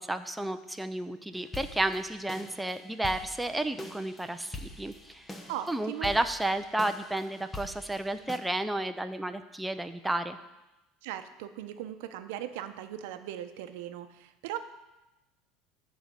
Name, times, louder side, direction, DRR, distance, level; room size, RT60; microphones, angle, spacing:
voice 1, 0.0-5.2 5.7-10.4, right 1 dB, 5° right, 8 dB, 0.5 m, -32 dB
sound 1, 1.3-8.4, left 2 dB, 15° left, 0.9 m, -45 dB
voice 2, 5.5-6.1 11.0-14.6, right 12 dB, 80° right, 9 dB, 0.7 m, -38 dB
11.0 x 4.1 x 7.7 m, 1.0 s
supercardioid pair, 130°, 0 cm